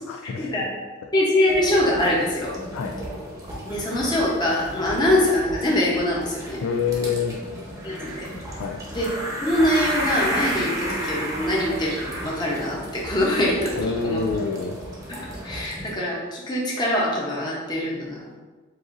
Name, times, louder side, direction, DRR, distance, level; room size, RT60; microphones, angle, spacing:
voice 1, 0.1-0.6 2.7-3.0 6.6-7.4 8.6-8.9 13.8-14.8, left 5 dB, 85° left, 3 dB, 0.3 m, -27 dB
voice 2, 1.1-2.5 3.6-6.6 7.8-8.3 8.9-9.1 9.4-14.2 15.1-18.4, left 1 dB, 20° left, -5 dB, 0.9 m, -23 dB
sound 1, 1.5-16.0, equal, 15° right, 0.9 m, -33 dB
7.5 x 2.6 x 2.6 m, 1.3 s
head